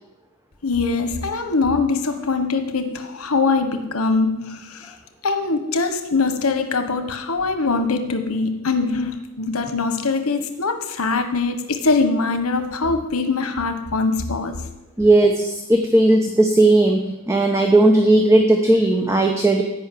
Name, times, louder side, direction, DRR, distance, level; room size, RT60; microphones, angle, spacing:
voice 1, 0.6-5.0 5.2-14.6, left 3 dB, 85° left, 8 dB, 1.2 m, -22 dB
voice 2, 15.0-19.6, right 2 dB, 15° right, 2 dB, 1.1 m, -16 dB
15.5 x 5.5 x 9.2 m, 0.94 s
head